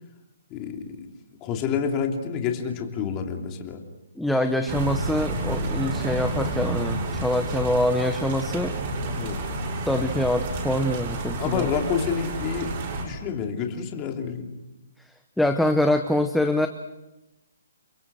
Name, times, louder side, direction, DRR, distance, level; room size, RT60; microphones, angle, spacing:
voice 1, 0.5-1.0 1.4-3.8 9.2-9.4 11.4-12.7 13.0-14.5, left 6 dB, 20° left, 2 dB, 2.9 m, -28 dB
voice 2, 4.2-8.7 9.9-11.7 15.4-16.7, left 1 dB, ahead, 5 dB, 1.0 m, -24 dB
sound 1, 4.7-13.0, right 2 dB, 30° right, 7.3 m, -30 dB
30.0 x 23.0 x 6.3 m, 0.97 s
hypercardioid pair, 165°, 0 cm